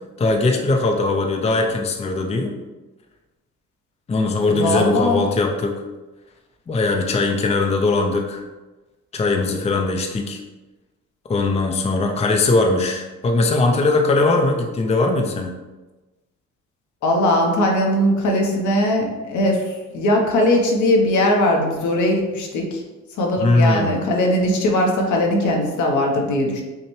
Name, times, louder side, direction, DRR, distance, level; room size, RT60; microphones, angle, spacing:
voice 1, 0.2-2.5 4.1-5.8 6.7-8.4 9.1-10.4 11.3-15.5 23.4-24.0, left 3 dB, 20° left, 2 dB, 0.5 m, -20 dB
voice 2, 4.5-5.2 17.0-22.8 23.2-26.6, left 1 dB, 75° left, 1 dB, 0.9 m, -19 dB
5.7 x 2.1 x 3.1 m, 1.2 s
cardioid pair, 90°, 30 cm